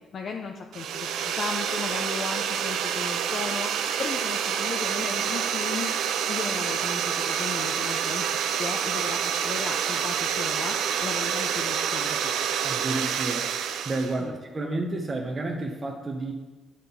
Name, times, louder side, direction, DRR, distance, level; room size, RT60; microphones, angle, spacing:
voice 1, 0.1-5.9 6.3-8.3 8.6-10.8 11.0-12.3 14.2-14.3, left 5 dB, 55° left, 3 dB, 0.6 m, -36 dB
sound 1, 0.7-14.2, right 8 dB, 80° right, 0.5 m, -28 dB
voice 2, 12.6-13.5 13.8-16.3, right 2 dB, 30° right, 1 dB, 0.9 m, -30 dB
9.7 x 3.7 x 5.7 m, 1.2 s
cardioid pair, 90°, 0 cm